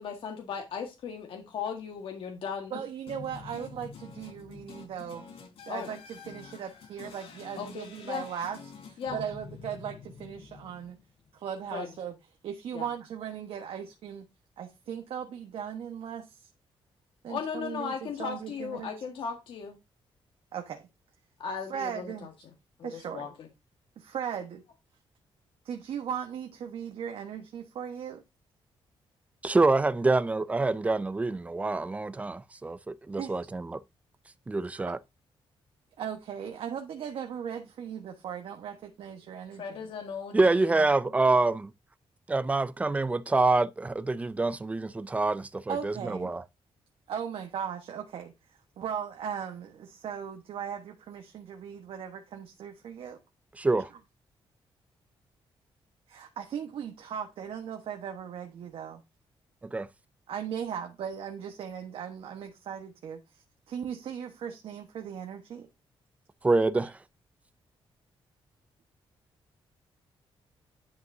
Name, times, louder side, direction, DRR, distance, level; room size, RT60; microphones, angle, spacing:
voice 1, 0.0-2.8 5.7-5.9 7.6-8.2 9.0-9.2 11.7-11.9 12.7-12.9 17.3-19.8 21.4-22.3 22.8-23.5 39.6-40.8, left 6 dB, 65° left, 1.6 m, -37 dB
voice 2, 2.7-5.2 5.7-8.6 9.1-10.9 11.4-12.1 12.4-14.2 14.6-16.2 17.2-18.9 20.5-20.8 21.7-22.3 22.8-23.3 24.0-24.6 25.7-28.2 33.2-33.3 34.8-34.9 36.0-39.8 45.7-46.3 47.1-48.3 48.8-53.2 56.1-59.0 60.3-63.2 63.7-65.6, right 8 dB, 70° right, 1.2 m, -38 dB
sound 1, 3.1-11.3, left 5 dB, 85° left, 3.5 m, -47 dB
voice 3, 29.4-33.8 34.5-35.0 40.3-41.7 42.3-46.4 53.6-53.9 59.7-59.9 66.4-67.0, right 3 dB, 15° right, 0.4 m, -26 dB
10.5 x 5.5 x 2.7 m
wide cardioid pair, 165°, 10 cm